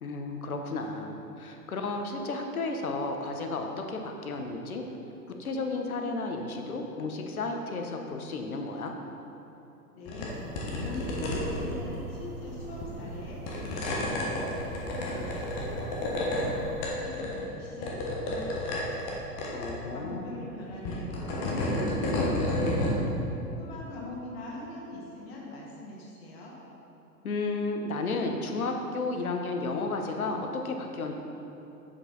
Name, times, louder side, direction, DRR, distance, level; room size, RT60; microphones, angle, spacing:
voice 1, 0.0-4.9 5.4-8.9 19.5-20.4 27.2-31.1, left 3 dB, 60° left, 3 dB, 1.0 m, -33 dB
voice 2, 9.9-10.4 10.8-19.3 19.9-23.1 23.4-26.5, left 2 dB, 40° left, -3 dB, 1.6 m, -43 dB
sound 1, 10.1-10.3 10.5-12.0 12.8-13.1 13.5-16.5 16.8-17.5 17.8-19.1 19.4-19.7 20.7-23.0, left 1 dB, 15° left, 0.5 m, -31 dB
sound 2, 10.3-16.9, right 3 dB, 40° right, 0.9 m, -43 dB
7.4 x 6.7 x 3.9 m, 2.9 s
figure-of-eight pair, 110°, 48 cm